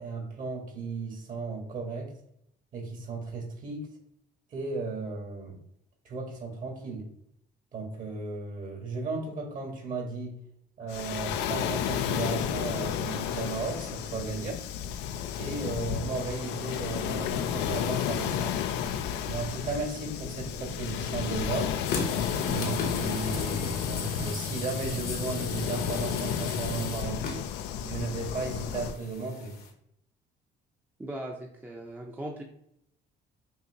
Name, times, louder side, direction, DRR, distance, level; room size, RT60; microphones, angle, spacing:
voice 1, 0.0-2.1 2.7-3.9 4.5-5.6 6.0-7.0 7.7-10.4 10.8-14.6 15.3-18.5 19.3-21.7 22.4-27.3 27.8-29.6, right 3 dB, 50° right, 1 dB, 1.5 m, -35 dB
Waves surf, 10.9-28.9, left 9 dB, 90° left, 0.4 m, -32 dB
sound 1, 21.8-29.7, left 3 dB, 65° left, 0.9 m, -36 dB
voice 2, 31.0-32.4, right 1 dB, 10° right, 0 dB, 0.6 m, -38 dB
5.5 x 2.8 x 2.8 m, 0.72 s
cardioid pair, 110°, 17 cm